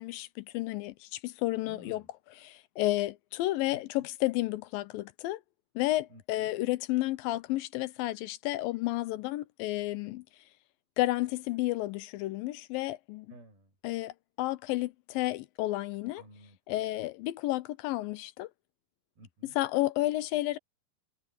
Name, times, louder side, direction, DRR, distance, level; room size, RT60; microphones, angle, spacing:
voice 1, 0.0-2.0 2.4-5.4 5.8-10.2 11.0-13.3 13.8-16.2 16.7-18.5 19.6-20.6, left 17 dB, 80° left, 2.3 m, -31 dB
voice 2, 1.7-2.1 3.7-3.8 6.1-6.5 13.3-13.7 16.2-16.8 19.2-19.6, right 1 dB, 85° right, 9.1 m, -54 dB
omnidirectional pair, 4.2 m